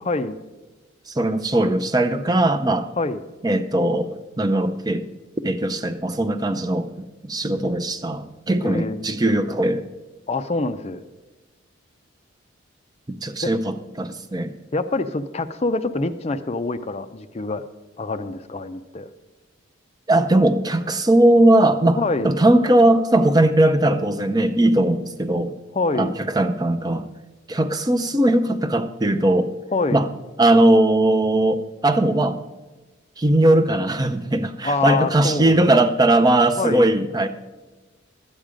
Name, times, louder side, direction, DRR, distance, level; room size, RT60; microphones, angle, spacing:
voice 1, 0.0-0.4 3.0-3.2 8.6-9.1 10.3-11.0 13.4-13.5 14.7-17.6 18.0-19.1 22.0-22.3 25.7-26.1 29.7-30.0 34.6-35.7 36.6-36.8, left 3 dB, 30° left, 10 dB, 0.5 m, -25 dB
voice 2, 1.1-2.9 3.4-4.1 4.4-5.0 5.4-9.9 13.2-14.5 20.1-25.5 26.0-27.1 27.5-29.5 29.9-30.1 30.4-32.4 33.2-37.3, right 1 dB, 20° right, 9 dB, 0.5 m, -19 dB
12.5 x 8.9 x 5.0 m, 1.2 s
head